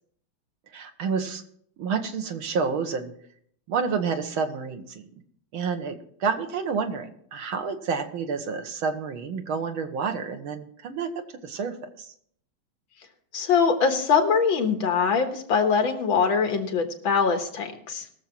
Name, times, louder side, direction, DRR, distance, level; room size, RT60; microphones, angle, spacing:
voice 1, 0.7-1.4 1.8-3.1 3.7-5.1 5.5-6.0 6.2-11.1 11.4-12.1, right 5 dB, 85° right, 6 dB, 2.1 m, -29 dB
voice 2, 13.3-18.0, left 5 dB, 75° left, 5 dB, 2.2 m, -23 dB
20.5 x 7.0 x 4.6 m, 0.64 s
omnidirectional pair, 2.2 m